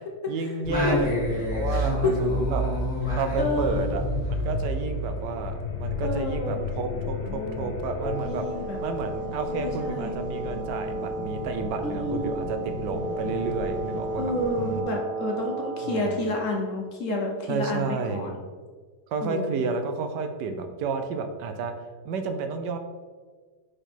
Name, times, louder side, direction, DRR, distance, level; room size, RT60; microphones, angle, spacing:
voice 1, 0.3-2.6 3.1-8.4 8.8-14.3 14.6-14.9 15.8-16.1 17.5-18.3 19.1-21.7 22.0-22.8, right 4 dB, 75° right, 7 dB, 1.2 m, -31 dB
Singing, 0.6-5.4, left 1 dB, 25° left, 2.1 m, -28 dB
voice 2, 1.7-2.1 3.4-3.8 6.0-6.7 7.0-7.8 8.2-8.8 9.6-10.1 11.8-12.3 12.9-13.4 14.2-18.4 19.2-19.6, left 2 dB, 55° left, 0 dB, 1.0 m, -30 dB
sound 1, 4.0-14.8, left 5 dB, 80° left, 1.3 m, -36 dB
Wind instrument woodwind instrument, 7.9-16.2, right 3 dB, 20° right, 1.2 m, -34 dB
5.0 x 5.0 x 4.4 m, 1.5 s
omnidirectional pair, 1.9 m